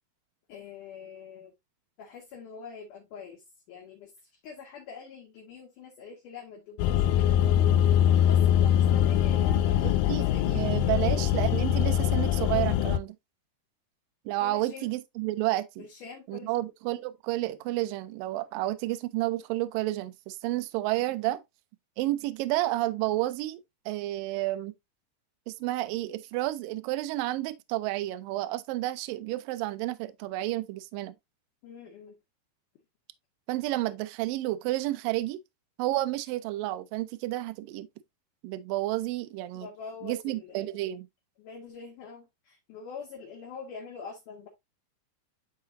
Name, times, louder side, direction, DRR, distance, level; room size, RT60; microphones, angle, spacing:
voice 1, 0.5-1.5 2.0-7.4 8.2-11.1 14.4-14.9 15.8-16.7 31.6-32.2 39.5-40.7 41.4-44.5, left 5 dB, 60° left, 2.5 m, -45 dB
sound 1, 6.8-13.0, left 10 dB, 90° left, 2.0 m, -23 dB
voice 2, 9.8-13.2 14.3-15.9 16.3-21.4 22.0-24.7 25.5-31.2 33.5-35.4 35.8-37.9 38.4-39.7 40.0-41.1, right 17 dB, 85° right, 2.0 m, -31 dB
11.5 x 3.9 x 2.6 m
omnidirectional pair, 4.7 m